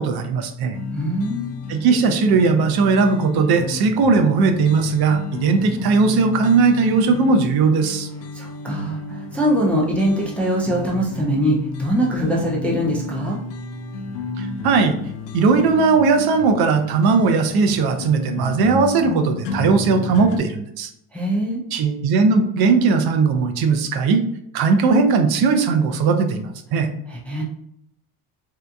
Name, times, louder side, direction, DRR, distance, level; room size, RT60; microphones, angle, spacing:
voice 1, 0.0-0.8 1.7-8.1 14.4-15.0 15.3-20.9 21.7-24.2 24.5-26.9, right 4 dB, 65° right, 6 dB, 0.6 m, -18 dB
sound 1, 0.7-20.4, left 3 dB, 85° left, 0.6 m, -32 dB
voice 2, 0.9-1.5 8.3-13.4 21.1-21.6 27.1-27.4, equal, 5° left, -3 dB, 0.3 m, -22 dB
3.5 x 2.8 x 2.2 m, 0.74 s
cardioid pair, 135°, 41 cm